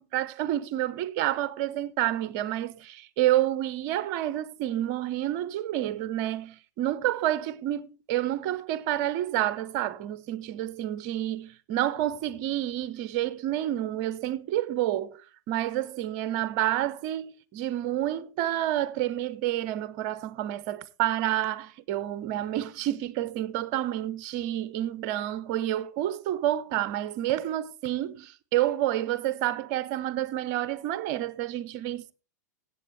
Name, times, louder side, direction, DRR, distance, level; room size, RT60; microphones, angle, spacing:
voice 1, 0.0-15.2 15.5-32.1, right 13 dB, 45° right, 0.8 m, -29 dB
16.5 x 7.7 x 3.3 m
figure-of-eight pair, 95°, 9 cm